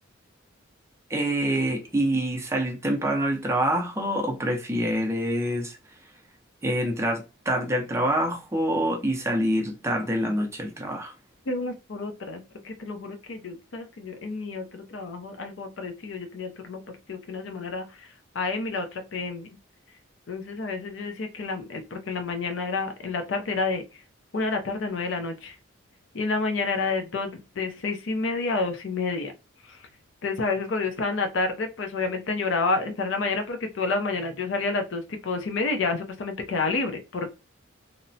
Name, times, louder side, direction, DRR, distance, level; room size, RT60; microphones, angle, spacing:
voice 1, 1.1-5.8 6.6-11.1, right 1 dB, 15° right, 0.4 m, -26 dB
voice 2, 11.5-18.1 18.3-19.5 20.3-23.8 24.3-25.5 26.1-29.3 29.7-29.8 30.2-37.3, left 3 dB, 65° left, 0.5 m, -29 dB
2.8 x 2.0 x 2.6 m
head